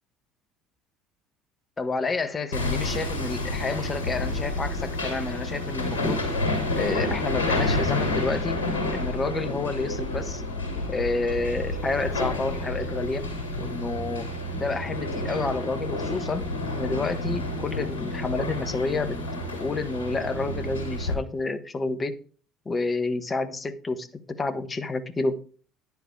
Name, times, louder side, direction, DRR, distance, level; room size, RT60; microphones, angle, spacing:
voice 1, 1.8-6.2 6.8-8.6 8.9-10.4 10.9-13.3 13.6-14.3 14.5-16.5 16.8-19.2 19.5-22.2 22.6-25.4, left 3 dB, 25° left, 12 dB, 1.3 m, -29 dB
Hammer, 2.5-21.1, left 2 dB, 80° left, 2.7 m, -29 dB
10.0 x 7.1 x 4.7 m, 0.41 s
figure-of-eight pair, 60°, 0 cm